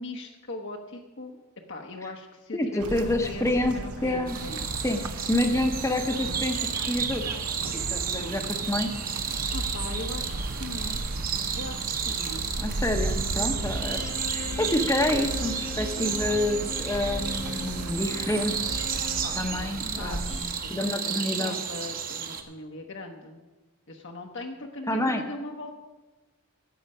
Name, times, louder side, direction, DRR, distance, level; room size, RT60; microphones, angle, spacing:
voice 1, 0.0-1.4 1.7-4.6 9.5-11.0 11.5-12.5 13.3-13.7 19.2-23.4 23.9-25.7, left 2 dB, 55° left, 2 dB, 1.0 m, -40 dB
voice 2, 2.5-3.8 4.0-4.4 4.8-5.0 5.3-7.2 7.9-8.9 12.6-19.1 19.4-21.6 24.9-25.3, left 1 dB, 15° left, 5 dB, 0.8 m, -28 dB
sound 1, 2.8-20.4, right 2 dB, 90° right, 0.9 m, -35 dB
sound 2, 4.3-22.4, right 7 dB, 40° right, 1.1 m, -32 dB
Bowed string instrument, 13.6-19.4, left 6 dB, 85° left, 3.4 m, -40 dB
13.0 x 8.5 x 5.5 m, 1.2 s
head